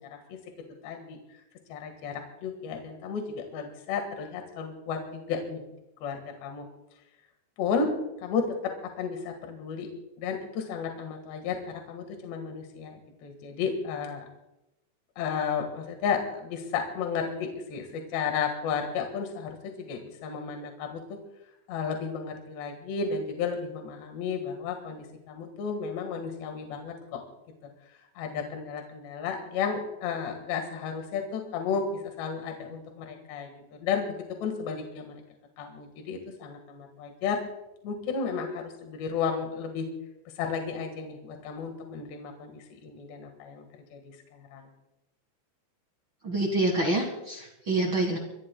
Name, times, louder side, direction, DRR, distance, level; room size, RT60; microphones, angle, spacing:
voice 1, 0.8-1.2 1.7-5.6 6.0-6.7 7.6-7.9 8.2-8.7 9.0-9.9 10.2-11.6 11.9-14.3 15.2-21.0 21.7-27.2 28.2-35.2 35.6-37.4 37.8-39.9 40.4-43.7 43.9-44.2 44.5-44.7, left 6 dB, 65° left, 3 dB, 3.7 m, -33 dB
voice 2, 46.2-48.2, right 2 dB, 80° right, 1 dB, 1.0 m, -27 dB
24.0 x 24.0 x 2.3 m, 0.91 s
omnidirectional pair, 5.5 m